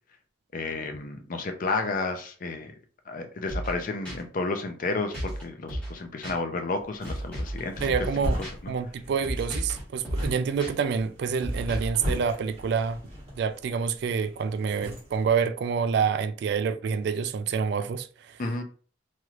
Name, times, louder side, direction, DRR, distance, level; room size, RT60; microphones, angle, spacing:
voice 1, 0.5-2.7 3.1-7.9 18.4-18.6, left 3 dB, 50° left, 0.5 m, -31 dB
sound 1, 3.5-3.8 4.1-4.2 5.1-5.4 5.7-6.0 6.2-6.4 7.0-7.6 7.9-8.2 8.4-8.5 9.2-9.8 10.0-10.3 10.6-10.7 11.4-12.0, right 1 dB, 5° left, 1.4 m, -33 dB
sound 2, 6.8-15.3, equal, 35° right, 1.3 m, -37 dB
voice 2, 7.8-8.4 8.7-13.0 13.3-18.4, right 6 dB, 65° right, 0.3 m, -27 dB
3.0 x 2.9 x 2.4 m
head